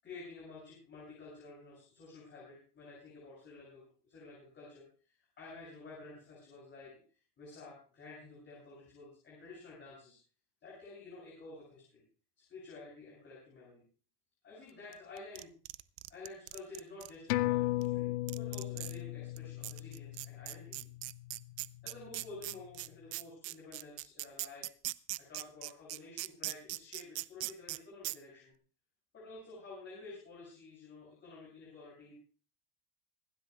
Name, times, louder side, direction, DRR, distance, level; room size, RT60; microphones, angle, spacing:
voice 1, 0.0-10.2 10.6-12.0 12.4-13.8 14.4-15.5 16.1-20.9 21.8-24.7 25.2-28.5 29.1-32.1, left 3 dB, 25° left, -5 dB, 8.0 m, -51 dB
sound 1, 14.9-17.1 17.8-17.9 18.3-19.0 19.4-19.5 19.6-27.8 28.0-28.2, right 22 dB, 45° right, 0.6 m, -40 dB
sound 2, 17.3-22.2 22.6-22.7, left 18 dB, 75° left, 0.9 m, -36 dB
26.0 x 12.0 x 2.3 m, 0.39 s
supercardioid pair, 155°, 45 cm